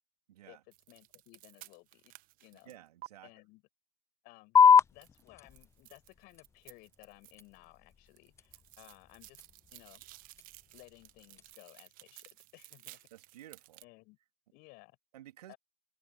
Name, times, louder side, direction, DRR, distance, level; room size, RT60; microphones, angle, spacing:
voice 1, 0.3-0.6 2.6-3.3 13.1-13.8 15.1-15.5, right 13 dB, 65° right, 2.4 m, -53 dB
sound 1, 0.7-3.1 5.0-7.6 7.9-13.8, right 20 dB, 40° right, 1.1 m, -55 dB
voice 2, 0.9-2.1 2.4-2.7 3.2-3.6 4.2-9.4 9.7-10.0 10.7-13.1 13.8-14.2 14.5-15.0 15.5-15.6, left 24 dB, 50° left, 7.9 m, -57 dB
sound 2, 4.6-11.5, left 7 dB, 15° left, 0.4 m, -30 dB
figure-of-eight pair, 85°, 21 cm